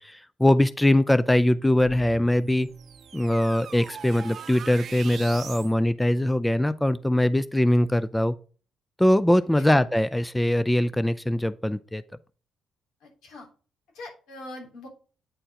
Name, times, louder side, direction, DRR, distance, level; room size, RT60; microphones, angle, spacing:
voice 1, 0.0-2.7 3.1-8.4 9.0-12.0, left 1 dB, 10° left, 0.4 m, -22 dB
sound 1, 1.8-5.7, right 7 dB, 60° right, 0.6 m, -41 dB
voice 2, 13.0-13.5 13.9-14.9, left 2 dB, 90° left, 3.5 m, -42 dB
9.1 x 4.4 x 4.9 m
cardioid pair, 90°, 0 cm